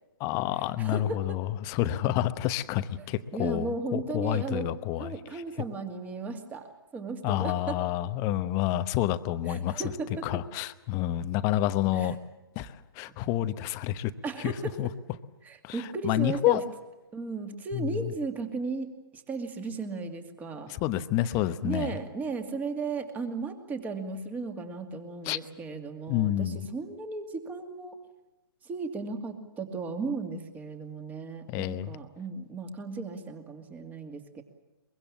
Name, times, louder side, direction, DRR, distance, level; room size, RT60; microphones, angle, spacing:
voice 1, 0.2-5.1 7.2-9.8 10.2-12.2 12.6-14.1 14.4-14.5 14.8-14.9 15.6-16.6 17.7-17.9 20.7-21.9 25.2-25.4 26.1-26.7 31.5-31.9, left 13 dB, 25° left, 12 dB, 1.0 m, -29 dB
voice 2, 0.8-1.4 3.3-4.7 5.0-7.8 9.5-10.4 11.9-12.1 14.2-14.8 15.4-16.6 17.1-20.7 21.6-28.0 28.6-34.4, right 4 dB, 15° right, 6 dB, 2.4 m, -35 dB
23.5 x 23.0 x 7.3 m, 1.1 s
figure-of-eight pair, 135°, 13 cm